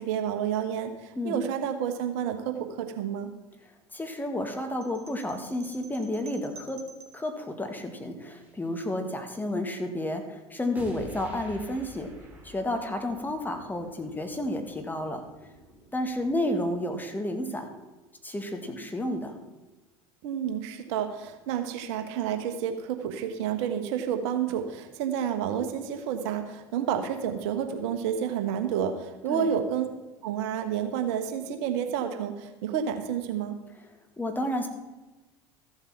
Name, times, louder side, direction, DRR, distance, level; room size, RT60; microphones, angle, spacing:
voice 1, 0.0-3.3 20.2-29.9 30.2-33.6, right 8 dB, 60° right, 7 dB, 1.3 m, -30 dB
voice 2, 3.9-6.8 7.1-12.1 12.4-15.2 15.9-17.7 18.2-19.4 29.3-29.5 34.2-34.7, left 1 dB, 10° left, 5 dB, 1.9 m, -31 dB
sound 1, 4.8-7.3, right 4 dB, 40° right, 1.9 m, -50 dB
sound 2, 8.4-8.7 10.7-16.7, equal, 10° right, 3.4 m, -49 dB
14.0 x 7.3 x 5.9 m, 1.2 s
hypercardioid pair, 75°, 16 cm